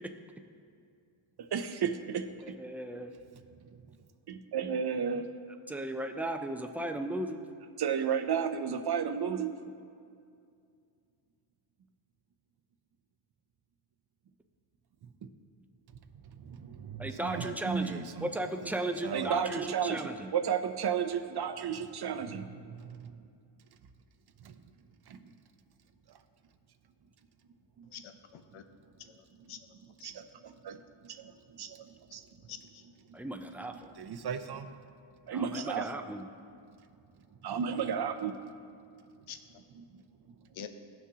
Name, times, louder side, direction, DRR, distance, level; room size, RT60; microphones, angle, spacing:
voice 1, 1.5-2.5 4.3-5.3 7.8-9.5 16.4-18.3 19.0-23.2 24.4-24.6 25.1-25.3 27.8-27.9 29.5-29.6 30.0-30.8 31.0-32.2 33.1-33.2 34.0-34.7 35.3-35.9 37.4-38.4 39.8-40.0 40.6-40.7, right 7 dB, 55° right, 9 dB, 0.6 m, -34 dB
voice 2, 2.4-3.1 5.7-7.4 17.0-20.3 33.1-33.9 35.3-36.3, right 1 dB, 5° right, 6 dB, 0.4 m, -36 dB
voice 3, 27.9-28.6 29.2-29.6 30.0-30.1 32.5-32.8 39.3-39.4 40.5-40.7, left 9 dB, 75° left, 8 dB, 0.7 m, -46 dB
16.5 x 6.0 x 2.8 m, 2.4 s
wide cardioid pair, 95°, 48 cm